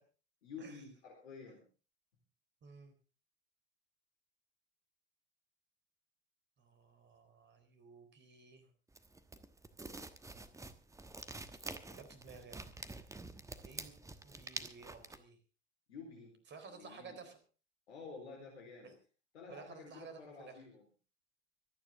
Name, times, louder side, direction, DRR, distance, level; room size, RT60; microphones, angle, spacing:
voice 1, 0.4-1.6 15.9-16.3 16.7-17.3 17.9-18.9 19.3-20.8, left 4 dB, 70° left, 0 dB, 4.4 m, -51 dB
voice 2, 2.6-2.9 6.6-8.7 11.9-12.8 13.6-13.9 14.2-15.4 16.5-17.4 18.8-18.9 19.5-20.6, right 5 dB, 30° right, 9 dB, 4.2 m, -54 dB
sound 1, 8.9-15.2, right 2 dB, 10° right, 1.2 m, -48 dB
25.5 x 9.9 x 3.7 m, 0.36 s
figure-of-eight pair, 75°, 34 cm